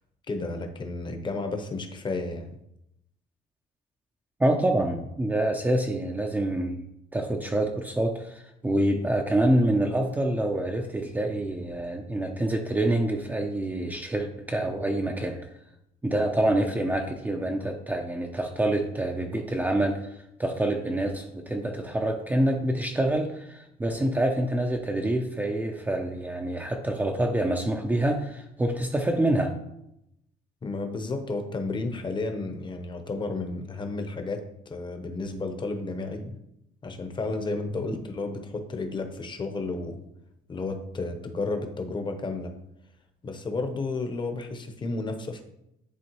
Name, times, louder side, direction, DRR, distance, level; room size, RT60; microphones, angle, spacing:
voice 1, 0.3-2.6 30.6-36.3 36.8-40.0 40.5-42.5 43.2-45.4, left 3 dB, 30° left, 5 dB, 0.9 m, -32 dB
voice 2, 4.4-6.9 7.1-15.5 16.0-29.5 36.2-36.3, right 1 dB, 10° right, 1 dB, 0.5 m, -26 dB
10.5 x 3.5 x 3.0 m, 0.82 s
cardioid pair, 110°, 17 cm